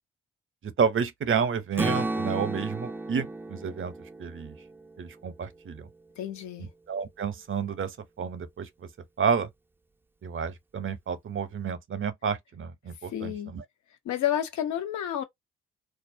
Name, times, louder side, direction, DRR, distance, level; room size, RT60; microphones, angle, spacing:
voice 1, 0.6-3.9 4.2-4.5 5.0-5.9 6.6-8.9 9.2-9.5 10.2-13.6, right 6 dB, 40° right, 0.7 m, -30 dB
Strum, 1.8-5.9, right 2 dB, 5° right, 0.4 m, -34 dB
voice 2, 6.2-6.7 13.1-13.5 14.0-15.2, left 11 dB, 65° left, 0.7 m, -30 dB
2.4 x 2.0 x 2.5 m
hypercardioid pair, 45°, 31 cm